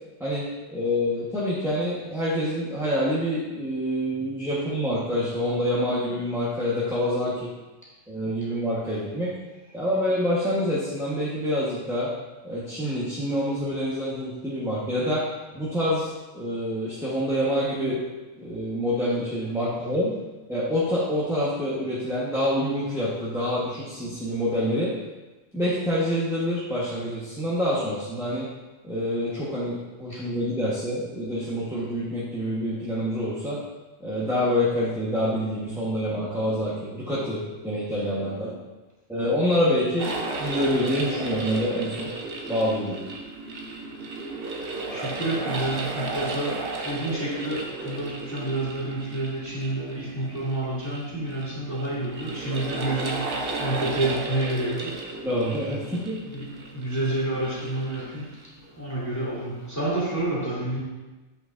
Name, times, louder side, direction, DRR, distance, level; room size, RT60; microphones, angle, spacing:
voice 1, 0.2-7.5 8.1-9.3 9.7-12.1 12.4-15.3 15.5-18.0 18.4-20.1 20.5-24.9 25.5-28.5 28.8-33.6 34.0-38.6 39.1-40.1 40.4-42.1 42.5-43.0 55.2-56.2, equal, ahead, -9 dB, 1.2 m, -26 dB
sound 1, 40.0-58.6, right 3 dB, 50° right, 0.9 m, -34 dB
voice 2, 44.8-55.0 56.3-58.4 58.6-60.8, right 1 dB, 15° left, -9 dB, 2.5 m, -29 dB
7.7 x 6.9 x 2.6 m, 1.1 s
omnidirectional pair, 1.3 m